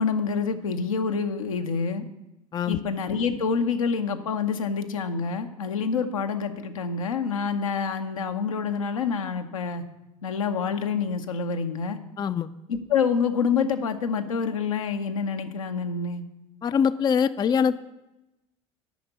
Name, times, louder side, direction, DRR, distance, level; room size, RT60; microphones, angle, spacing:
voice 1, 0.0-2.0 2.7-9.8 10.2-12.0 12.7-16.2, left 5 dB, 80° left, 6 dB, 0.8 m, -27 dB
voice 2, 12.2-12.5 16.6-17.8, left 7 dB, 25° left, 14 dB, 0.4 m, -23 dB
9.2 x 5.8 x 8.1 m, 0.96 s
figure-of-eight pair, 65°, 17 cm